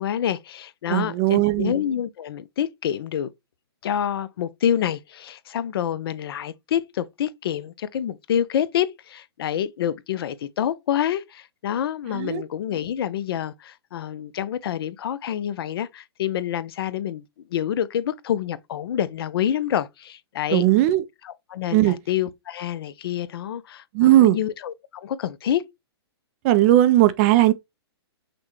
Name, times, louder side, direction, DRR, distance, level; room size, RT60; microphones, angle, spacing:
voice 1, 0.0-3.3 3.8-17.2 17.5-20.7 21.2-25.6, left 10 dB, 60° left, 0.5 m, -27 dB
voice 2, 0.9-1.7 12.1-12.4 20.5-21.0 21.7-22.0 23.9-24.4 26.4-27.5, right 14 dB, 30° right, 0.4 m, -17 dB
5.9 x 2.1 x 3.1 m
hypercardioid pair, 145°, 14 cm